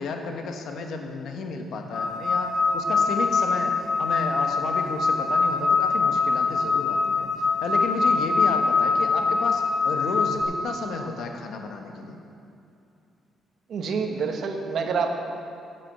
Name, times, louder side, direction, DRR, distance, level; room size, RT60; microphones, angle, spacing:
voice 1, 0.0-7.3 7.6-12.2, left 4 dB, 70° left, 3 dB, 1.3 m, -32 dB
sound 1, 1.9-10.4, left 4 dB, 55° left, 1.8 m, -23 dB
voice 2, 13.7-15.2, right 5 dB, 65° right, 4 dB, 1.1 m, -27 dB
8.2 x 8.0 x 7.8 m, 2.6 s
cardioid pair, 90°, 0 cm